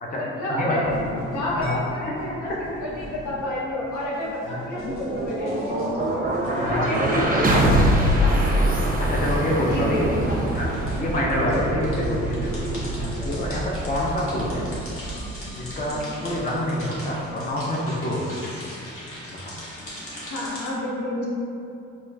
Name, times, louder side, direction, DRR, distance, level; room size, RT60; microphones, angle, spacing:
voice 1, 0.1-0.8 1.3-2.5 2.8-8.3 9.7-10.5 11.5-11.7 12.1-12.2 13.0-13.2 15.9-16.1 20.3-21.2, left 1 dB, 65° left, -5 dB, 0.9 m, -30 dB
sound 1, 0.8-20.7, left 1 dB, 45° left, 1.1 m, -40 dB
voice 2, 1.5-2.2 4.5-4.6 4.8-5.0 6.6-7.2 9.1-10.1 10.5-12.8 13.2-14.7 15.6-18.5 19.3-19.5, left 1 dB, 25° left, -3 dB, 0.6 m, -27 dB
sound 2, 4.5-16.5, right 1 dB, 25° right, 0.6 m, -24 dB
4.3 x 2.3 x 2.7 m, 2.6 s
supercardioid pair, 50°, 32 cm